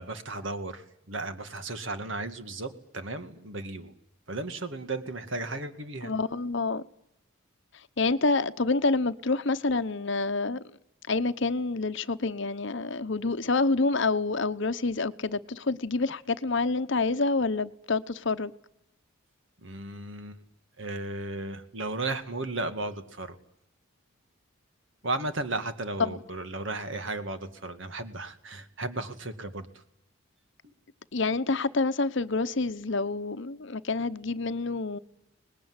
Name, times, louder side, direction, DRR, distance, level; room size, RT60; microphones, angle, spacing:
voice 1, 0.0-3.9 4.3-6.1 19.6-20.4 20.8-23.4 25.0-29.7 30.6-30.7, right 2 dB, 60° right, 2.2 m, -35 dB
voice 2, 6.0-6.8 8.0-10.6 11.1-18.5 26.0-26.2 31.1-35.0, left 3 dB, 60° left, 0.9 m, -27 dB
25.5 x 20.0 x 9.7 m
head